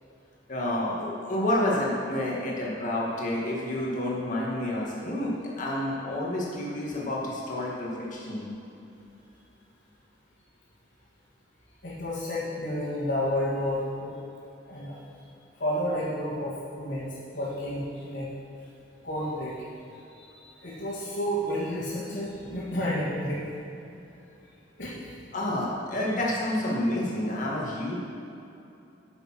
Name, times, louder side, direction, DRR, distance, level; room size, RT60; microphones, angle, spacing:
voice 1, 0.5-8.5 25.3-27.9, left 1 dB, 45° left, -4 dB, 2.0 m, -29 dB
voice 2, 11.8-14.1 14.7-15.0 15.6-18.3 19.0-19.6 20.1-23.5 24.8-25.1, equal, 70° left, -11 dB, 2.3 m, -31 dB
9.5 x 6.8 x 5.7 m, 2.8 s
head